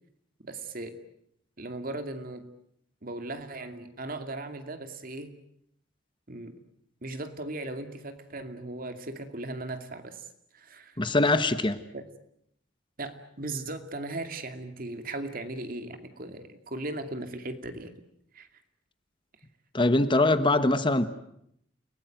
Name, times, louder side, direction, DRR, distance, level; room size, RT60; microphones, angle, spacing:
voice 1, 0.4-1.0 1.6-2.5 3.0-5.4 6.3-6.6 7.0-10.3 10.5-11.0 11.9-12.0 13.0-17.9 18.3-18.5, right 2 dB, 50° right, 2.5 m, -37 dB
voice 2, 11.0-11.8 19.7-21.1, left 2 dB, 25° left, 1.2 m, -23 dB
29.5 x 18.5 x 9.2 m
head